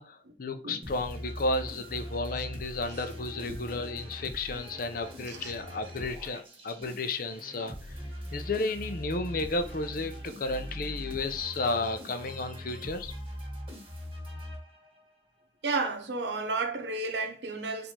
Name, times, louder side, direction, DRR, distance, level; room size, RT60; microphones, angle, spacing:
voice 1, 0.0-8.0 8.3-13.1, left 2 dB, 55° left, 0.6 m, -33 dB
sound 1, 0.8-15.1, equal, 30° right, 1.5 m, -42 dB
voice 2, 15.6-17.9, right 3 dB, 80° right, 0.8 m, -32 dB
4.5 x 2.6 x 4.3 m
head